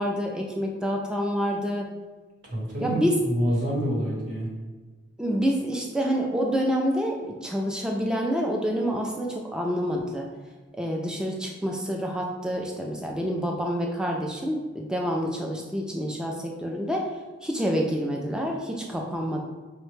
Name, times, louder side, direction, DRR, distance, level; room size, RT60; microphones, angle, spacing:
voice 1, 0.0-1.9 2.8-3.2 5.2-10.3 10.8-17.1 17.4-19.4, equal, 5° right, 0 dB, 0.3 m, -27 dB
voice 2, 2.4-4.5, equal, 60° right, -5 dB, 1.3 m, -27 dB
4.8 x 2.2 x 3.1 m, 1.3 s
head